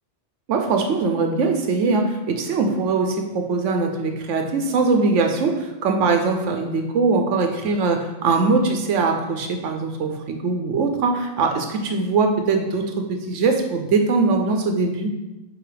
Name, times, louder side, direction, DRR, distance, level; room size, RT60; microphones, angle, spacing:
voice 1, 0.5-15.1, right 4 dB, 85° right, 4 dB, 1.1 m, -21 dB
8.7 x 3.0 x 5.0 m, 1.0 s
omnidirectional pair, 1.2 m